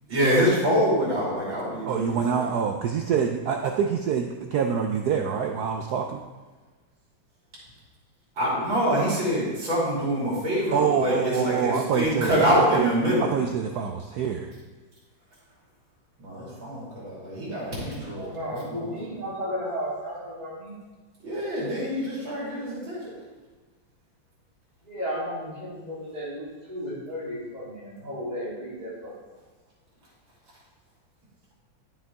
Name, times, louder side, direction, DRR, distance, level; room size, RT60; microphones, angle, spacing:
voice 1, 0.1-2.5 8.4-13.3 16.2-18.9 21.2-23.2, equal, 90° right, -8 dB, 3.8 m, -25 dB
voice 2, 1.8-6.2 10.7-12.4 12.7-12.9 13.2-14.5, right 7 dB, 70° right, 3 dB, 1.0 m, -26 dB
voice 3, 18.2-20.7 24.8-29.1, equal, 20° right, -13 dB, 3.3 m, -34 dB
11.5 x 7.4 x 3.5 m, 1.3 s
omnidirectional pair, 2.1 m